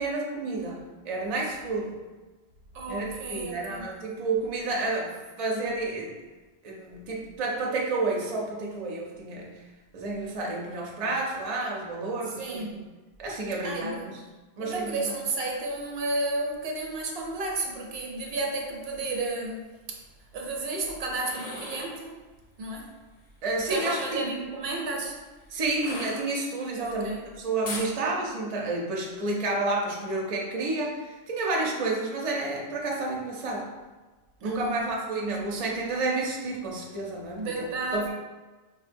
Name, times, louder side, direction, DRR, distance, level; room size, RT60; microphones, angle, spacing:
voice 1, 0.0-2.0 2.9-6.1 6.6-9.5 9.9-12.8 13.2-14.2 14.6-15.2 23.4-24.3 25.5-33.7 34.4-38.1, right 2 dB, 45° right, -2 dB, 0.5 m, -30 dB
voice 2, 2.7-3.9 12.4-12.9 13.6-14.1 14.6-20.0 20.3-22.2 22.6-22.9 23.7-25.2 26.8-27.2 34.4-34.9 37.3-38.1, right 2 dB, 70° right, 0 dB, 0.8 m, -32 dB
Inflating a balloon till it blows, 21.2-22.0 23.6-24.3 25.8-26.7 27.6-27.9, left 2 dB, 50° left, 0.5 m, -38 dB
4.0 x 2.1 x 2.5 m, 1.2 s
omnidirectional pair, 1.1 m